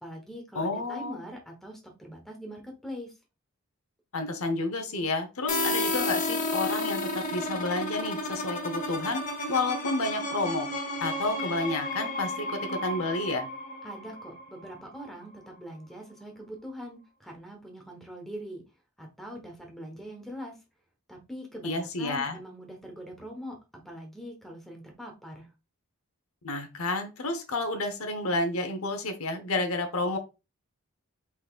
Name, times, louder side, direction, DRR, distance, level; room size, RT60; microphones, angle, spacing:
voice 1, 0.0-3.1 13.8-18.6 19.0-20.5 21.1-23.6 23.8-25.5, equal, ahead, 1 dB, 1.1 m, -42 dB
voice 2, 0.5-1.2 4.1-9.2 9.5-10.7 11.0-13.5 21.6-22.4 26.4-30.2, left 2 dB, 70° left, 7 dB, 0.9 m, -30 dB
sound 1, 5.5-15.1, left 1 dB, 35° left, 0.9 m, -32 dB
5.2 x 4.1 x 2.4 m, 0.27 s
head